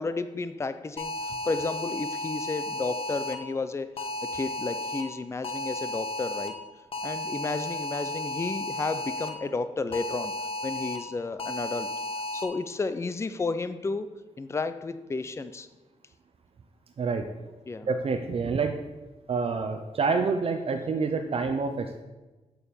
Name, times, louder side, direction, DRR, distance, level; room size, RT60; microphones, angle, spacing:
voice 1, 0.0-6.5 7.0-10.4 10.6-11.9 12.3-14.1 14.4-15.7 17.7-17.9, left 3 dB, 20° left, 12 dB, 0.5 m, -32 dB
sound 1, 1.0-3.3 4.0-5.0 5.4-6.5 6.9-9.3 9.9-11.0 11.4-12.4, left 2 dB, 50° left, 1.4 m, -33 dB
voice 2, 17.8-18.8 19.3-22.0, right 4 dB, 55° right, 5 dB, 0.7 m, -27 dB
7.9 x 6.9 x 7.0 m, 1.2 s
wide cardioid pair, 115°, 12 cm